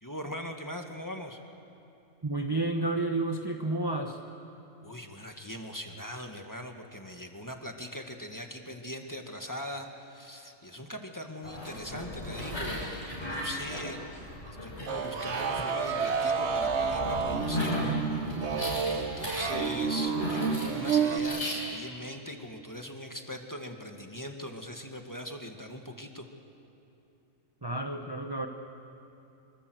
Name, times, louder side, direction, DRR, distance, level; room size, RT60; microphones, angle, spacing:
voice 1, 0.0-1.4 4.8-26.3, equal, 15° left, 4 dB, 1.8 m, -41 dB
voice 2, 2.2-4.2 27.6-28.5, right 2 dB, 20° right, 3 dB, 1.0 m, -30 dB
sound 1, 11.4-21.6, left 1 dB, 60° left, 6.5 m, -37 dB
sound 2, 14.9-21.2, right 6 dB, 60° right, 1.3 m, -30 dB
25.0 x 25.0 x 7.9 m, 2.8 s
omnidirectional pair, 1.3 m